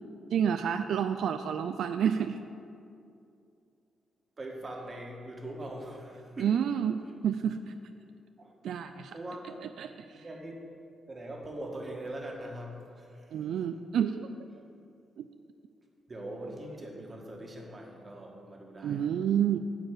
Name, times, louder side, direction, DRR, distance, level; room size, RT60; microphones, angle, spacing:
voice 1, 0.3-2.4 6.4-7.0 7.2-7.7 8.6-9.1 9.8-10.2 13.3-14.3 15.2-15.3 18.8-19.6, right 8 dB, 75° right, 8 dB, 0.3 m, -29 dB
voice 2, 4.4-6.6 8.4-8.5 9.1-9.7 10.1-10.6 11.1-13.4 16.1-19.1, right 1 dB, 25° right, 0 dB, 1.4 m, -42 dB
11.5 x 4.5 x 8.0 m, 2.5 s
wide cardioid pair, 160°, 0 cm